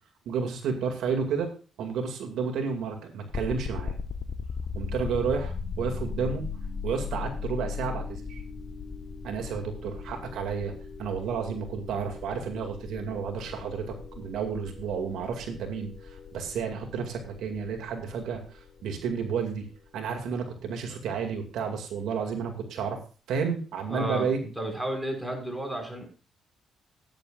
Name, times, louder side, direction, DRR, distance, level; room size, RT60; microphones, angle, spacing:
voice 1, 0.3-1.5 1.8-3.9 4.8-6.4 6.8-8.4 9.2-10.7 11.0-18.4 18.8-19.6 19.9-23.0 23.3-24.4, right 6 dB, 80° right, 3 dB, 2.2 m, -31 dB
sound 1, 3.3-20.2, left 5 dB, 50° left, 1.2 m, -38 dB
voice 2, 23.9-24.3 24.6-26.1, right 1 dB, 5° right, 2 dB, 5.4 m, -32 dB
17.0 x 9.4 x 2.5 m, 0.37 s
cardioid pair, 90°, 0 cm